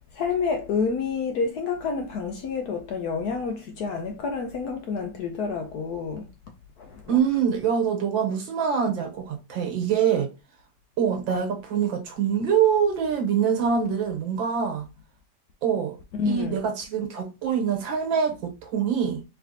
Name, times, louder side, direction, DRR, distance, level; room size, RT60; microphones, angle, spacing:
voice 1, 0.1-6.3 6.8-7.2 16.2-16.6, left 5 dB, 70° left, 1.0 m, -28 dB
voice 2, 7.1-10.3 11.0-14.9 15.6-16.0 16.3-19.2, right 7 dB, 80° right, 1.7 m, -24 dB
4.4 x 3.3 x 2.7 m
omnidirectional pair, 2.1 m